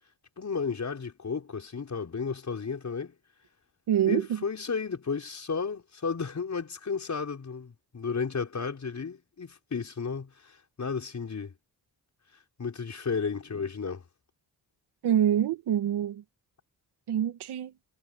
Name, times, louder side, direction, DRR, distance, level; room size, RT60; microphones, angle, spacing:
voice 1, 0.4-3.1 4.1-11.5 12.6-14.0, left 5 dB, 45° left, 5.8 m, -33 dB
voice 2, 3.9-4.4 15.0-16.2 17.1-17.7, right 10 dB, 85° right, 1.8 m, -26 dB
cardioid pair, 65°, 39 cm